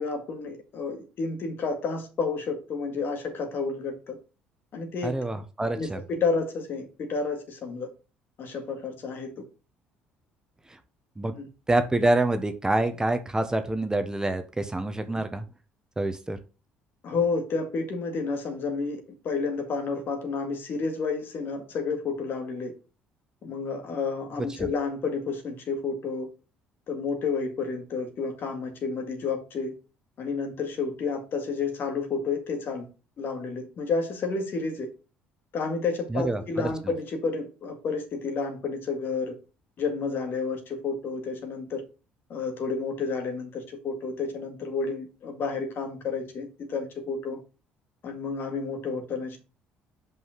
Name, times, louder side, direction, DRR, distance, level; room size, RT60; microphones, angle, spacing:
voice 1, 0.0-4.2 4.7-5.1 5.7-7.9 8.4-9.4 11.3-11.5 17.0-22.7 23.4-26.3 26.9-29.7 30.2-32.9 33.2-34.9 35.5-39.4 39.8-41.8 42.3-47.4 48.0-49.4, left 4 dB, 55° left, 2.0 m, -30 dB
voice 2, 5.0-6.0 11.2-11.3 11.7-15.4 16.0-16.4 24.6-24.7 36.1-36.4, right 2 dB, 15° right, 1.1 m, -26 dB
5.5 x 5.4 x 5.8 m
hypercardioid pair, 55°, 4 cm